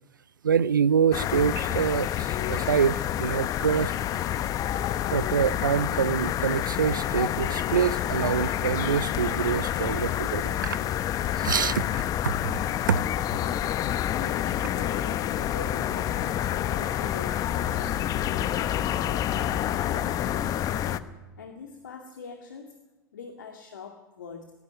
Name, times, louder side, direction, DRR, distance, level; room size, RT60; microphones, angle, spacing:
voice 1, 0.4-3.9 5.1-10.8 11.3-12.5 12.9-13.0 13.3-13.4, right 7 dB, 75° right, 0.6 m, -26 dB
sound 1, 1.1-21.0, left 11 dB, 35° left, 1.0 m, -28 dB
voice 2, 14.1-21.1 21.4-22.8 23.1-24.5, left 5 dB, 70° left, 2.1 m, -43 dB
18.5 x 17.0 x 9.3 m
figure-of-eight pair, 85°, 11 cm